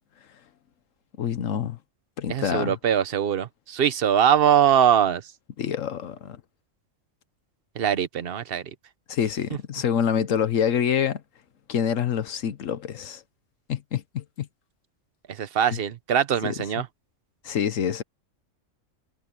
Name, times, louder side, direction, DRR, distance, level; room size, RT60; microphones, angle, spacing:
voice 1, 1.2-1.8 2.2-2.7 5.6-6.4 9.1-11.2 11.7-13.2 13.7-14.5 15.7-15.8 16.4-16.5 17.4-18.0, left 8 dB, 80° left, 1.3 m, -26 dB
voice 2, 2.3-5.3 7.7-8.7 15.3-16.9, right 9 dB, 50° right, 1.1 m, -22 dB
omnidirectional pair, 1.3 m